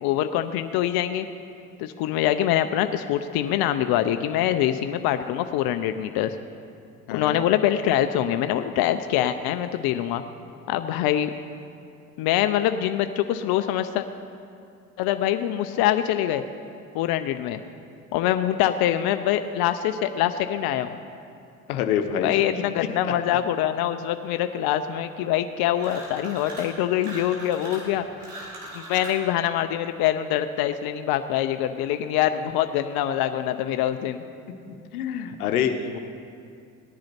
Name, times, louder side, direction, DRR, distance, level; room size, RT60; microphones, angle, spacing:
voice 1, 0.0-1.3 1.8-6.4 7.1-10.2 10.7-11.3 12.2-14.0 15.0-16.4 16.9-17.6 18.1-21.0 22.2-28.1 28.7-34.2, left 11 dB, 55° left, 9 dB, 0.7 m, -24 dB
voice 2, 21.7-22.6 23.0-23.1 34.9-36.0, left 8 dB, 80° left, 7 dB, 1.0 m, -26 dB
sound 1, 25.8-26.7 27.0-29.2, right 1 dB, 85° right, 3.5 m, -39 dB
18.0 x 10.5 x 4.4 m, 2.5 s
hypercardioid pair, 65°, 44 cm